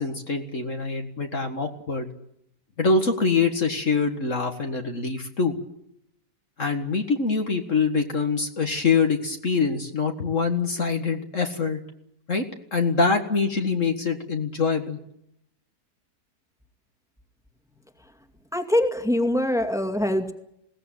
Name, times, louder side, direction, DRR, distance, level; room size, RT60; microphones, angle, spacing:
voice 1, 0.0-2.1 2.8-5.6 6.6-11.8 12.3-12.5 12.7-15.0, left 4 dB, 50° left, 5 dB, 2.0 m, -24 dB
voice 2, 18.5-20.3, left 1 dB, ahead, 6 dB, 2.2 m, -23 dB
21.5 x 18.0 x 9.3 m, 0.76 s
omnidirectional pair, 1.8 m